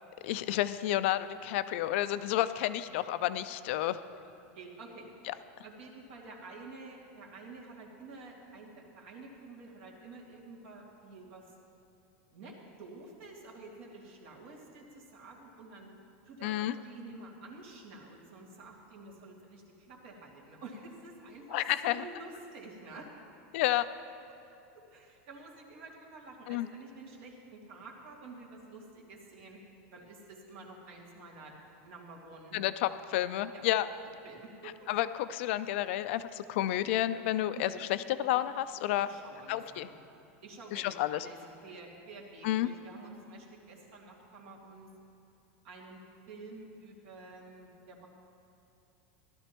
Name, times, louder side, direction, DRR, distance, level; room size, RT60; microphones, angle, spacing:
voice 1, 0.2-4.0 5.3-5.4 16.4-16.8 21.5-22.0 23.5-23.9 26.5-26.7 32.5-33.9 34.9-39.1 39.5-39.9 40.7-41.3 42.4-42.7, left 13 dB, 65° left, 13 dB, 0.4 m, -30 dB
voice 2, 4.6-5.1 5.6-11.5 12.3-15.9 16.2-23.1 24.9-29.6 29.9-31.5 31.8-32.6 33.5-33.6 34.2-34.9 37.5-37.7 39.0-39.9 40.4-44.9 45.6-46.0 46.3-48.1, right 3 dB, 65° right, -2 dB, 2.4 m, -49 dB
16.0 x 12.5 x 3.0 m, 2.8 s
supercardioid pair, 145°, 7 cm